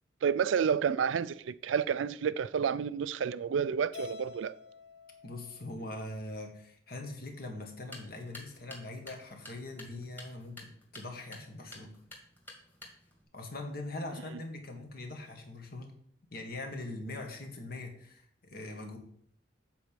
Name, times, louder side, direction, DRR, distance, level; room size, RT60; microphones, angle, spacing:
voice 1, 0.2-4.6, right 7 dB, 75° right, 0.4 m, -30 dB
Keyboard (musical), 3.9-6.3, left 5 dB, 70° left, 1.3 m, -48 dB
voice 2, 5.2-12.0 13.3-15.9 16.3-19.0, left 2 dB, 50° left, 1.7 m, -42 dB
sound 1, 7.7-13.2, left 1 dB, 10° left, 1.8 m, -51 dB
7.9 x 4.5 x 6.8 m
head